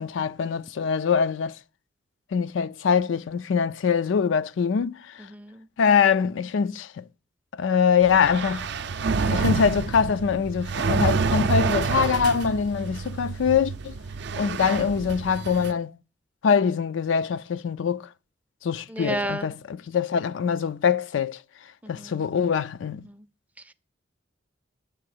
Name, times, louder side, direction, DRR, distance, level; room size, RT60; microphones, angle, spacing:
voice 1, 0.0-1.6 2.3-5.3 5.8-7.0 7.5-8.7 9.3-14.0 14.4-16.0 16.4-18.1 18.6-21.4 21.9-23.1, left 6 dB, 75° left, 0.4 m, -23 dB
voice 2, 5.3-5.7 18.9-19.5 21.8-22.2 23.1-23.2 23.7-23.8, right 1 dB, 10° right, 0.4 m, -32 dB
sound 1, 8.0-15.7, right 4 dB, 60° right, 0.5 m, -28 dB
8.6 x 6.1 x 6.6 m
head